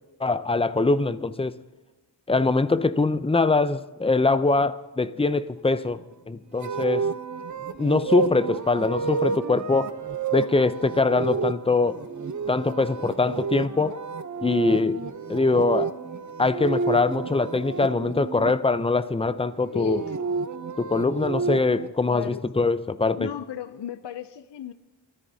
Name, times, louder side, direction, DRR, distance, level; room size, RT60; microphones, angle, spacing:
voice 1, 0.2-1.6 2.3-6.0 6.3-7.1 7.8-10.0 10.3-12.0 12.5-14.0 14.4-15.0 15.3-15.9 16.4-20.0 20.8-23.3, left 3 dB, 15° left, 0.5 m, -23 dB
sound 1, 6.6-18.5 19.7-21.9, right 5 dB, 40° right, 0.7 m, -30 dB
voice 2, 19.7-20.1 22.1-22.4 23.2-24.7, left 10 dB, 65° left, 0.6 m, -34 dB
23.5 x 13.5 x 2.8 m
wide cardioid pair, 55°, 45 cm